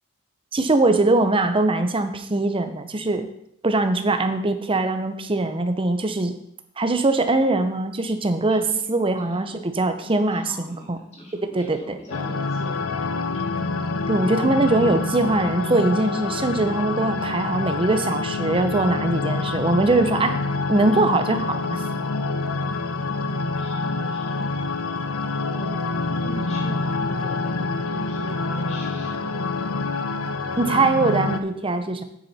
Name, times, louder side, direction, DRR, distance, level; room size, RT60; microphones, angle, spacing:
voice 1, 0.5-3.3 3.6-6.3 6.8-8.6 8.9-11.0 11.5-12.0 14.1-20.4 20.7-21.8 30.6-32.0, right 2 dB, 25° right, 8 dB, 0.8 m, -22 dB
voice 2, 8.7-9.5 10.0-13.2 23.6-24.5 25.5-25.8 26.1-29.4, left 1 dB, 30° left, -3 dB, 2.8 m, -41 dB
sound 1, 12.1-31.4, left 3 dB, 70° left, 0.7 m, -26 dB
8.8 x 8.8 x 4.3 m, 0.73 s
head